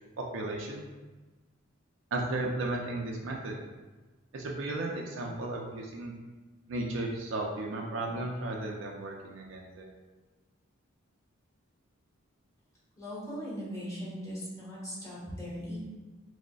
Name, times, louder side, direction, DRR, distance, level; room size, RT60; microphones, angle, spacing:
voice 1, 0.3-0.8 2.1-3.5 4.3-6.1 6.7-9.9, right 2 dB, 65° right, -1 dB, 0.4 m, -34 dB
voice 2, 13.0-15.8, equal, 15° left, -8 dB, 1.2 m, -39 dB
4.8 x 2.0 x 2.3 m, 1.2 s
head